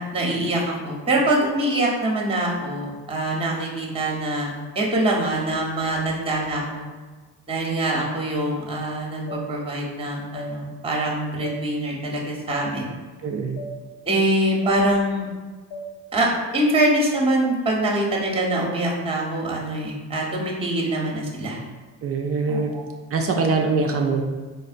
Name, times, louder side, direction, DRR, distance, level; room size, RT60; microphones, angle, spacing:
voice 1, 0.1-6.8 7.5-12.9 14.0-15.3 16.1-21.6 22.5-22.8, right 1 dB, 10° right, -2 dB, 0.8 m, -24 dB
sound 1, 9.3-9.4 10.3-10.5 11.4-11.6 12.5-12.6 13.6-13.7 14.6-14.8 15.7-15.9 16.8-16.9, equal, 70° left, 1.0 m, -35 dB
voice 2, 13.2-13.6 22.0-22.7 23.1-24.2, right 4 dB, 30° right, 2 dB, 0.4 m, -23 dB
4.0 x 2.2 x 2.5 m, 1.3 s
hypercardioid pair, 55°, 48 cm